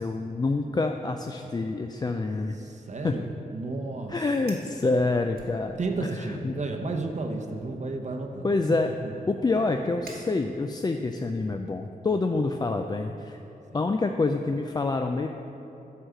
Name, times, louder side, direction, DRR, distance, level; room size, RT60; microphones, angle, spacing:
voice 1, 0.0-2.6 3.0-3.2 4.1-6.5 8.4-8.9 9.3-13.4 13.7-15.3, left 3 dB, 25° left, 4 dB, 0.3 m, -27 dB
voice 2, 2.5-4.2 5.8-8.6 9.5-9.6 13.7-13.8, right 3 dB, 50° right, 2 dB, 0.8 m, -33 dB
Fire, 4.5-4.8 5.3-6.1 6.5-6.8 7.5-10.9, right 3 dB, 75° right, 1.4 m, -50 dB
9.9 x 4.7 x 6.7 m, 2.9 s
wide cardioid pair, 100°, 16 cm